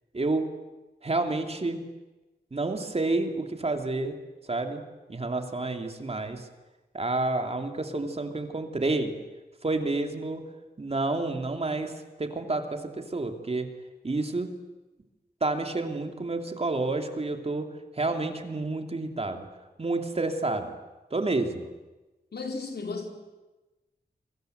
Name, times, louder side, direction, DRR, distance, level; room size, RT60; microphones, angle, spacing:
voice 1, 0.1-0.5 1.0-1.8 2.5-4.2 4.5-4.8 5.1-6.5 6.9-9.1 9.6-10.4 10.8-13.7 14.0-14.5 15.4-19.5 19.8-20.7 21.1-21.7, right 2 dB, 35° right, 5 dB, 2.7 m, -29 dB
voice 2, 22.3-23.1, left 4 dB, 80° left, 3 dB, 4.3 m, -34 dB
28.5 x 23.5 x 8.0 m, 1.1 s
wide cardioid pair, 105°, 17 cm